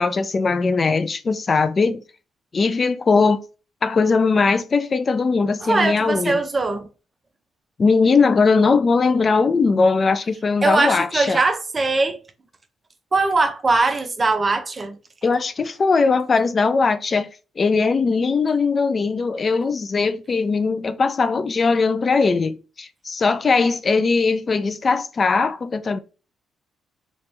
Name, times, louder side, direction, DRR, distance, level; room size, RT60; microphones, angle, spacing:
voice 1, 0.0-2.0 2.5-3.4 3.8-6.4 7.8-11.4 15.2-17.3 17.6-26.0, left 4 dB, 40° left, 0.3 m, -20 dB
voice 2, 5.6-6.9 10.6-12.2 13.1-14.9, right 3 dB, 30° right, 0.6 m, -20 dB
3.0 x 3.0 x 3.2 m
cardioid pair, 90°, 0 cm